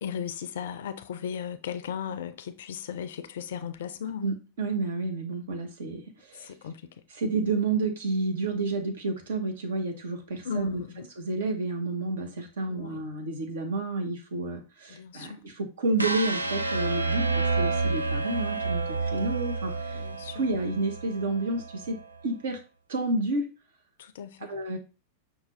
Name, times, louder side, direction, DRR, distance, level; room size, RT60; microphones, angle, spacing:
voice 1, 0.0-4.3 6.4-6.8 10.4-11.1 12.7-13.0 14.9-15.4 19.9-20.4 24.0-24.6, left 8 dB, 60° left, 0.4 m, -36 dB
voice 2, 4.2-6.5 7.1-10.8 11.2-20.0 20.3-22.0 22.2-22.6 22.9-23.5 24.5-24.8, right 2 dB, 60° right, 1.0 m, -30 dB
sound 1, 16.0-22.1, right 3 dB, 80° right, 0.4 m, -29 dB
5.7 x 2.3 x 3.2 m
figure-of-eight pair, 90°, 0 cm